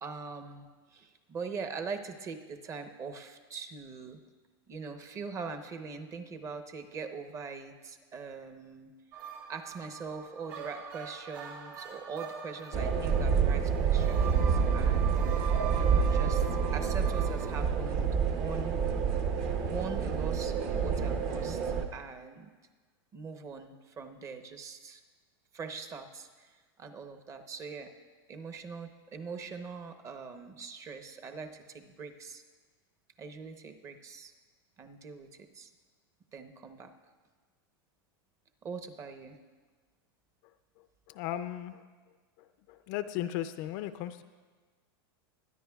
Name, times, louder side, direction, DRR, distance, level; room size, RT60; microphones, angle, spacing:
voice 1, 0.0-4.2 4.7-8.9 9.5-18.8 19.6-21.6 21.9-22.5 23.1-25.0 25.5-27.9 28.3-32.4 33.2-34.3 34.8-35.7 36.3-36.9 38.6-39.4, right 5 dB, 25° right, 7 dB, 0.8 m, -42 dB
sound 1, 9.1-17.6, right 7 dB, 75° right, 3.1 m, -43 dB
sound 2, 12.7-21.8, right 6 dB, 45° right, 1.1 m, -28 dB
voice 2, 40.8-41.8 42.4-44.2, left 12 dB, 50° left, 11 dB, 0.5 m, -37 dB
22.5 x 10.0 x 2.3 m, 1.4 s
supercardioid pair, 140°, 13 cm